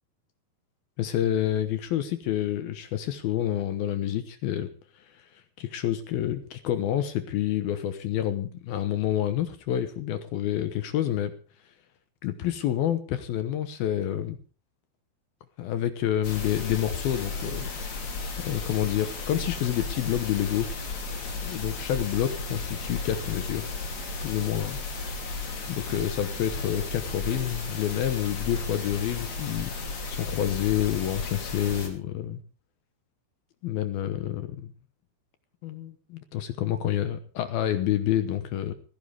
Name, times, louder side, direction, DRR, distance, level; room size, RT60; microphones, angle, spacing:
voice 1, 1.0-4.7 5.0-11.3 12.2-14.4 15.6-17.7 18.4-20.7 21.4-23.6 24.2-24.8 25.7-32.4 33.6-34.7 35.6-38.7, left 11 dB, 70° left, 10 dB, 2.7 m, -28 dB
sound 1, 16.2-31.9, left 3 dB, 45° left, 4.1 m, -34 dB
18.0 x 16.0 x 3.5 m, 0.40 s
omnidirectional pair, 4.9 m